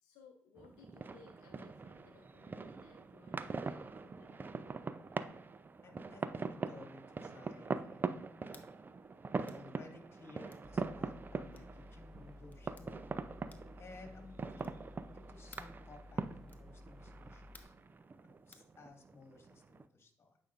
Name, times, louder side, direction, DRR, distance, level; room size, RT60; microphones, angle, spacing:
voice 1, 0.0-4.6, left 5 dB, 90° left, 3 dB, 0.6 m, -62 dB
sound 1, 0.6-19.8, right 4 dB, 35° right, 0.5 m, -43 dB
voice 2, 5.8-8.8 9.4-13.0 13.8-14.8 15.1-17.7 18.2-20.4, left 3 dB, 45° left, 4 dB, 1.9 m, -57 dB
sound 2, 8.5-8.7 9.4-9.7 10.5-10.7 11.5-11.8 12.5-12.9 13.5-13.8 14.6-14.9 15.5-15.8 16.5-16.7 17.5-17.8 18.5-18.7, left 3 dB, 30° left, 1.0 m, -60 dB
Mechanical fan, 10.6-17.6, left 1 dB, 5° left, 0.6 m, -55 dB
9.0 x 5.3 x 2.5 m, 0.65 s
supercardioid pair, 55°, 6 cm